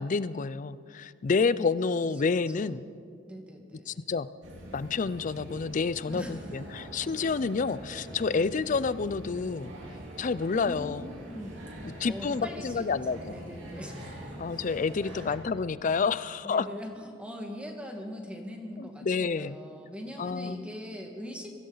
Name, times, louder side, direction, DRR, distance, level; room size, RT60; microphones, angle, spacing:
voice 1, 0.0-2.8 3.9-4.3 4.7-9.7 10.2-11.1 11.8-13.4 14.4-16.7 18.8-19.6 20.2-20.7, left 4 dB, 40° left, 16 dB, 0.4 m, -29 dB
voice 2, 1.4-2.0 2.5-4.1 6.1-6.4 8.3-8.5 10.5-10.9 11.3-11.6 12.0-14.3 16.4-21.6, equal, 5° right, 2 dB, 1.7 m, -42 dB
sound 1, 4.4-15.4, equal, 75° right, 3.3 m, -44 dB
23.0 x 15.5 x 4.0 m, 2.3 s
head